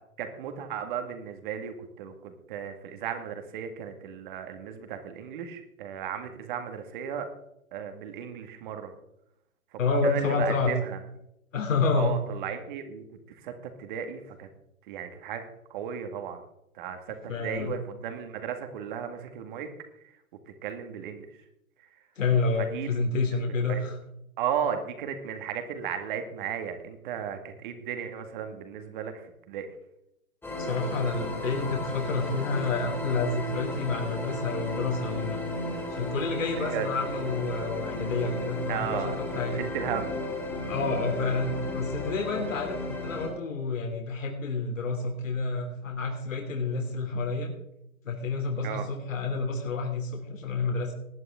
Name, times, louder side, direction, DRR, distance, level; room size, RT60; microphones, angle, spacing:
voice 1, 0.2-7.3 7.7-8.9 10.0-11.0 12.0-13.0 13.4-14.5 14.9-15.4 15.7-16.4 16.8-19.7 20.6-21.2 22.6-23.0 23.3-23.4 23.7-23.8 24.4-29.1 29.5-29.7 36.6-36.9 38.7-39.2 39.5-40.2 48.6-48.9, right 8 dB, 35° right, 7 dB, 2.0 m, -35 dB
voice 2, 9.8-10.7 11.5-12.2 17.3-17.8 22.1-24.0 30.6-35.4 35.9-39.6 40.6-47.5 48.0-50.9, left 4 dB, 65° left, 1 dB, 3.3 m, -29 dB
sound 1, 30.4-43.3, left 1 dB, 5° left, 3.1 m, -34 dB
19.5 x 10.5 x 3.7 m, 0.82 s
figure-of-eight pair, 130°, 42 cm